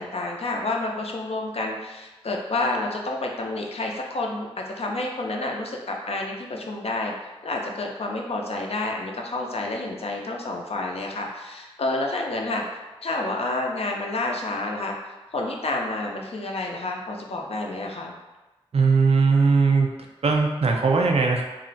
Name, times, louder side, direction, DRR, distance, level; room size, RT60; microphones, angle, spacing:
voice 1, 0.0-7.1 7.4-12.6 13.0-15.0 15.3-18.2, left 2 dB, 75° left, 0 dB, 0.4 m, -29 dB
voice 2, 18.7-19.9 20.2-21.4, right 4 dB, 85° right, 1 dB, 0.4 m, -19 dB
2.4 x 2.1 x 3.8 m, 1.1 s
wide cardioid pair, 65°, 10 cm